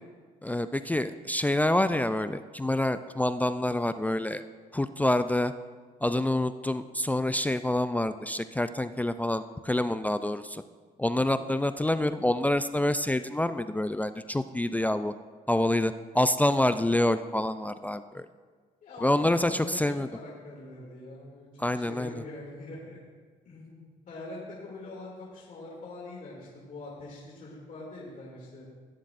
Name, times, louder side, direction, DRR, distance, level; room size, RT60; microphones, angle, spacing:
voice 1, 0.4-4.4 4.7-5.5 6.0-10.6 11.0-15.1 15.5-18.3 19.0-20.1 21.6-22.1, left 1 dB, 10° left, 11 dB, 0.3 m, -27 dB
voice 2, 11.2-11.6 18.8-23.0 23.4-28.7, left 2 dB, 55° left, -5 dB, 2.6 m, -43 dB
16.5 x 7.4 x 2.6 m, 1.5 s
supercardioid pair, 70°, 16 cm